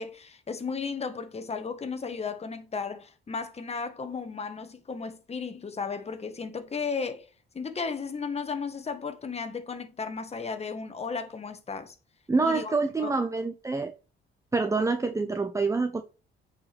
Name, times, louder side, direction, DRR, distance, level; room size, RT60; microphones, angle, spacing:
voice 1, 0.0-7.2 7.5-11.9 12.4-12.7 13.0-13.1, left 5 dB, 30° left, 1.4 m, -34 dB
voice 2, 12.3-13.9 14.5-16.0, right 3 dB, 15° right, 0.8 m, -26 dB
8.5 x 4.9 x 3.5 m
cardioid pair, 90°, 20 cm